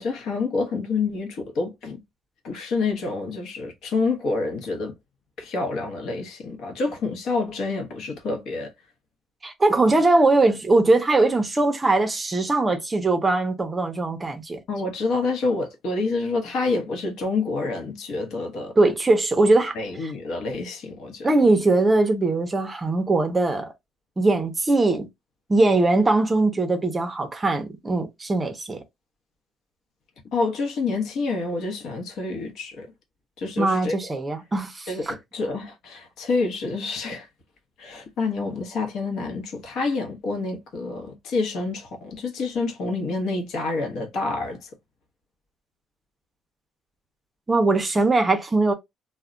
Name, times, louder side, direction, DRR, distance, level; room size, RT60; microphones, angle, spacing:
voice 1, 0.0-2.0 2.4-4.9 5.4-8.7 9.9-10.0 14.7-18.7 19.7-21.5 30.3-32.9 33.4-34.1 34.9-37.3 37.8-44.7, left 3 dB, 65° left, 0.9 m, -28 dB
voice 2, 9.4-14.6 18.8-19.8 20.0-20.1 21.2-23.7 24.2-25.1 25.5-28.8 33.6-35.1 47.5-48.7, right 2 dB, 15° right, 0.5 m, -21 dB
2.3 x 2.1 x 3.7 m
cardioid pair, 170°, 0 cm